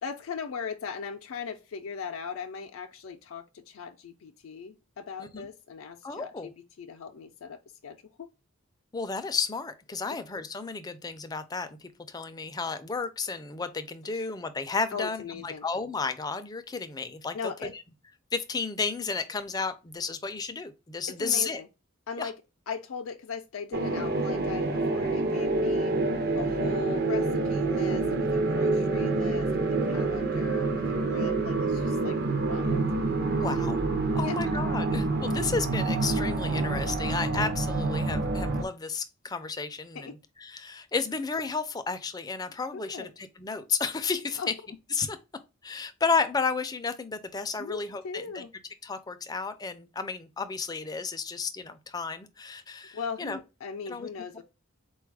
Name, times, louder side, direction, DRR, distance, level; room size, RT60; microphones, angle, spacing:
voice 1, 0.0-6.5 6.8-8.3 10.1-10.2 14.1-14.2 14.9-15.6 17.3-17.7 21.1-21.7 22.1-22.4 22.7-25.9 26.3-32.9 33.5-33.6 34.2-34.4 39.9-40.1 42.7-43.1 44.4-44.5 47.6-48.5 52.9-54.4, left 5 dB, 80° left, 0.4 m, -39 dB
voice 2, 6.0-6.5 8.9-17.4 17.6-17.7 18.3-21.6 22.2-22.3 33.3-33.8 34.1-40.1 40.4-44.4 44.9-45.2 45.6-48.4 48.8-53.4 53.9-54.1 54.3-54.4, left 4 dB, 20° left, 0.3 m, -32 dB
sound 1, 23.7-38.6, right 3 dB, 45° right, 0.5 m, -27 dB
4.1 x 2.3 x 4.6 m
head